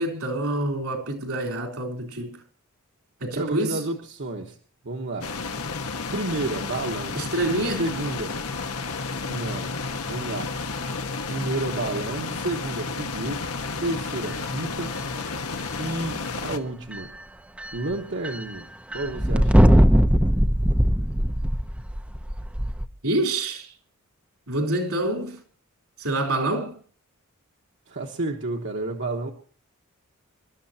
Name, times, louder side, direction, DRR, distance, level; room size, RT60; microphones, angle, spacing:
voice 1, 0.0-2.4 3.2-3.8 7.2-7.9 23.0-23.7 24.5-25.4 26.0-26.8, right 1 dB, 80° right, 3.6 m, -26 dB
voice 2, 3.3-4.6 4.8-5.3 6.1-7.2 7.8-8.3 9.3-9.7 10.1-10.5 11.3-13.5 13.8-14.9 15.8-17.1 17.7-19.8 27.9-29.3, right 2 dB, 60° right, 1.4 m, -31 dB
sound 1, 5.2-16.6, left 4 dB, 90° left, 1.4 m, -31 dB
sound 2, 16.9-17.0 17.6-17.9 18.2-18.4 18.9-22.9, equal, 5° right, 0.7 m, -20 dB
27.0 x 12.5 x 2.9 m
head